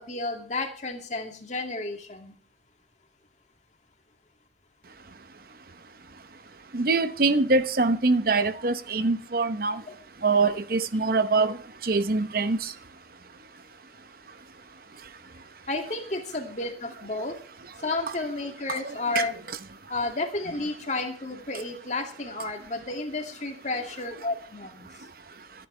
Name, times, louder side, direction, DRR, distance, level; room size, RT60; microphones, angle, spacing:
voice 1, 0.0-2.3 9.9-10.0 15.7-17.3 17.8-19.4 19.9-24.9, left 2 dB, 40° left, 2.4 m, -32 dB
voice 2, 6.7-9.8 10.2-11.6 11.8-12.7 18.7-19.3, right 3 dB, 50° right, 0.9 m, -24 dB
26.0 x 10.0 x 3.3 m
head